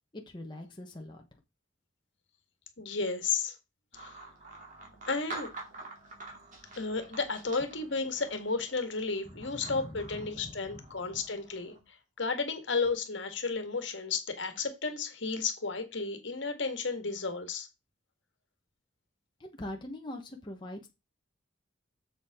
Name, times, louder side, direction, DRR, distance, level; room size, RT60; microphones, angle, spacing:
voice 1, 0.1-1.2 9.3-11.2 19.4-20.9, left 1 dB, 25° left, 1.1 m, -43 dB
voice 2, 2.8-3.5 3.9-4.1 5.1-5.5 6.8-11.7 12.2-17.7, left 4 dB, 65° left, 1.7 m, -33 dB
sound 1, 3.9-11.8, right 2 dB, 40° right, 2.8 m, -48 dB
7.4 x 7.2 x 3.7 m
head